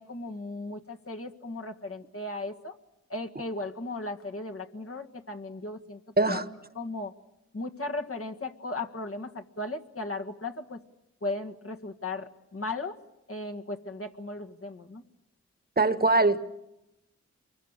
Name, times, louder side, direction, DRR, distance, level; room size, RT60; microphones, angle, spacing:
voice 1, 0.0-2.7 3.1-6.0 6.3-6.4 6.8-7.1 7.5-10.8 11.2-13.0 13.3-15.0, left 2 dB, 50° left, 4 dB, 1.8 m, -36 dB
voice 2, 15.8-16.4, right 2 dB, 30° right, 11 dB, 1.3 m, -22 dB
29.0 x 23.5 x 6.7 m, 0.91 s
cardioid pair, 50°, 29 cm